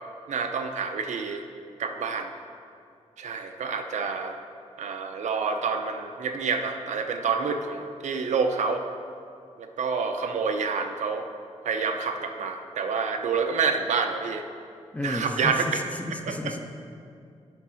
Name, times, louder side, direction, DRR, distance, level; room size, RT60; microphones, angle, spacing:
voice 1, 0.3-1.5 1.8-2.3 3.2-4.4 4.8-8.9 9.6-11.3 11.6-14.4 15.0-15.8 16.3-16.6, right 5 dB, 80° right, 6 dB, 0.6 m, -28 dB
voice 2, 14.9-16.6, left 1 dB, 10° left, 4 dB, 0.5 m, -32 dB
8.9 x 4.6 x 5.6 m, 2.4 s
wide cardioid pair, 165°, 12 cm